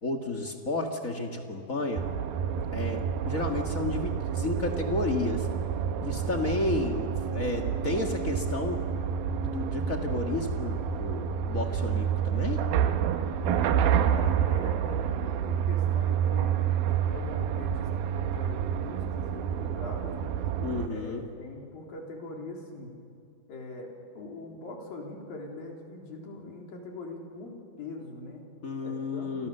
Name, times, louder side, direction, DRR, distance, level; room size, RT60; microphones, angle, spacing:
voice 1, 0.0-2.0 2.7-5.5 6.0-8.8 9.4-12.7 20.6-21.2 28.6-29.5, left 2 dB, 45° left, 2 dB, 1.0 m, -32 dB
sound 1, 2.0-20.9, right 8 dB, 75° right, 2.8 m, -29 dB
voice 2, 13.4-20.4 20.9-23.0 23.5-28.5 28.8-29.5, left 2 dB, 65° left, 0 dB, 5.3 m, -42 dB
29.5 x 25.5 x 6.8 m, 2.5 s
omnidirectional pair, 4.5 m